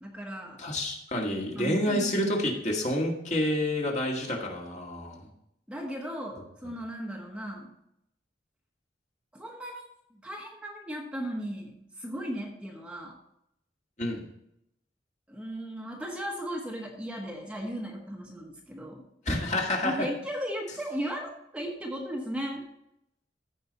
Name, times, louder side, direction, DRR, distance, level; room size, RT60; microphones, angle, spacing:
voice 1, 0.0-0.7 1.6-2.5 5.7-7.7 9.3-9.8 10.1-13.2 15.3-19.0 19.8-22.6, equal, 5° right, 0 dB, 1.1 m, -36 dB
voice 2, 0.6-5.2 14.0-14.2 19.3-19.9, left 1 dB, 40° left, 0 dB, 1.8 m, -28 dB
14.5 x 4.9 x 4.1 m, 0.79 s
head